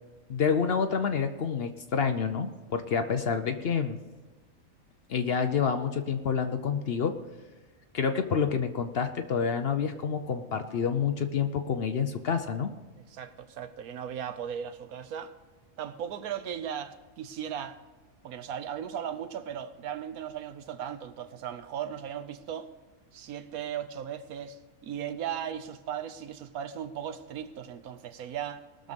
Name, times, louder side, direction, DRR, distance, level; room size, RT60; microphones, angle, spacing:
voice 1, 0.3-4.0 5.1-7.2 7.9-12.7, left 6 dB, 55° left, 0.7 m, -28 dB
voice 2, 13.1-15.3 15.8-17.8 18.2-22.7 23.1-28.9, right 9 dB, 85° right, 1.3 m, -37 dB
19.0 x 6.6 x 5.2 m
omnidirectional pair, 1.5 m